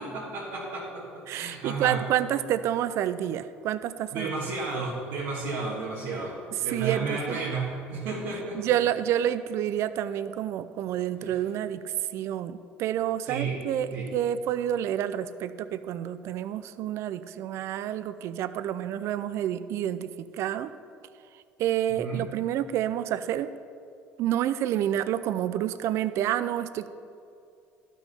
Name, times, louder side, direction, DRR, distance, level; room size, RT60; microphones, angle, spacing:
voice 1, 0.0-2.0 4.1-8.6 13.3-13.6 13.9-14.1 21.9-22.2, right 4 dB, 80° right, -6 dB, 1.7 m, -32 dB
voice 2, 1.3-4.4 6.5-7.4 8.5-20.7 21.3-23.5 24.2-26.9, right 11 dB, 65° right, 13 dB, 0.4 m, -29 dB
12.0 x 6.1 x 5.5 m, 2.4 s
supercardioid pair, 85°, 5 cm